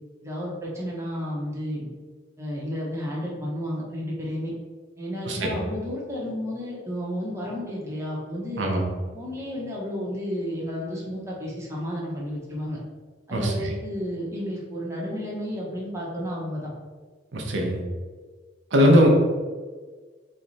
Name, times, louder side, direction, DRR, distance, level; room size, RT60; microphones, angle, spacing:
voice 1, 0.2-1.9 2.4-4.5 5.0-8.6 9.1-12.8 13.3-16.7, equal, 15° right, -5 dB, 0.8 m, -32 dB
voice 2, 13.3-13.7 17.3-17.8 18.7-19.1, equal, 80° right, 0 dB, 0.7 m, -20 dB
3.3 x 3.2 x 4.0 m, 1.4 s
head